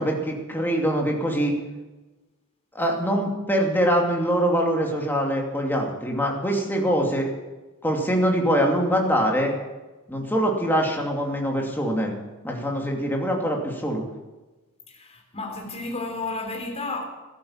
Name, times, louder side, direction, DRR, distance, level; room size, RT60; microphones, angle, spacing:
voice 1, 0.0-1.5 2.7-7.3 7.8-9.6 10.1-12.1 12.4-14.0, equal, 10° left, 2.7 m, -23 dB
voice 2, 14.9-17.0, left 3 dB, 30° left, 3.6 m, -32 dB
14.0 x 13.0 x 7.3 m
head